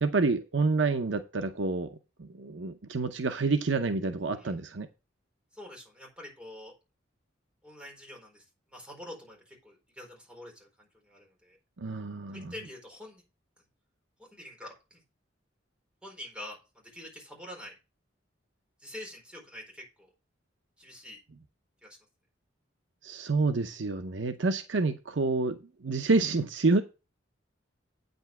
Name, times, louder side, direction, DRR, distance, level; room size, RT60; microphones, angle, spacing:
voice 1, 0.0-4.9 11.8-12.5 23.0-26.8, right 3 dB, 70° right, 0.8 m, -28 dB
voice 2, 5.5-6.7 7.6-11.6 12.3-13.2 14.2-15.0 16.0-17.7 18.8-20.1 20.8-21.2 21.8-22.0, left 1 dB, 5° right, 4.4 m, -46 dB
9.0 x 5.3 x 6.0 m
head